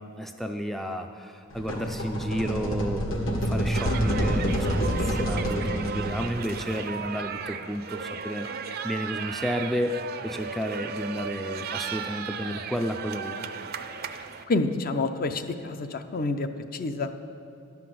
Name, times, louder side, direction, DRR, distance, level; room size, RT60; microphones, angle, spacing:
voice 1, 0.2-8.5 8.8-13.4, equal, ahead, 5 dB, 0.4 m, -32 dB
sound 1, 1.5-6.4, equal, 70° left, 1.6 m, -27 dB
sound 2, 3.7-14.4, right 6 dB, 50° right, 0.5 m, -35 dB
voice 2, 14.5-17.1, left 3 dB, 45° left, 8 dB, 0.6 m, -28 dB
11.5 x 5.9 x 7.7 m, 2.6 s
head